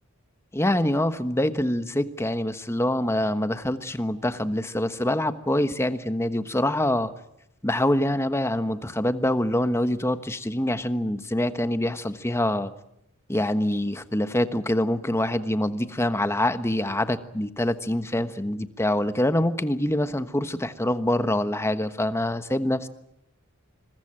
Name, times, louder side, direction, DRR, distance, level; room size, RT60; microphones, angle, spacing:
voice 1, 0.5-7.1 7.6-12.7 13.3-22.9, left 1 dB, 10° left, 11 dB, 1.2 m, -25 dB
26.5 x 21.5 x 8.9 m, 0.81 s
head